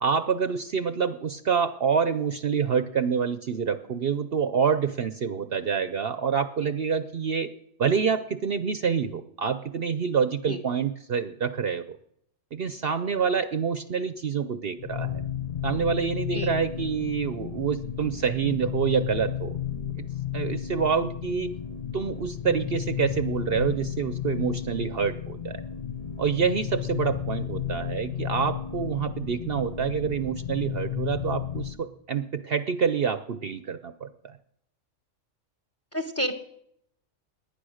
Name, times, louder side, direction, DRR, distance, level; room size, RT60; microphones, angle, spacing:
voice 1, 0.0-7.5 7.8-12.0 12.5-15.1 15.6-19.6 20.0-20.1 20.3-21.5 21.9-25.6 26.2-34.3, right 6 dB, 55° right, 12 dB, 0.9 m, -27 dB
sound 1, 14.8-31.8, left 10 dB, 35° left, 0.8 m, -33 dB
voice 2, 35.9-36.3, equal, 10° left, 9 dB, 1.4 m, -29 dB
19.0 x 10.5 x 6.4 m, 0.72 s
omnidirectional pair, 1.3 m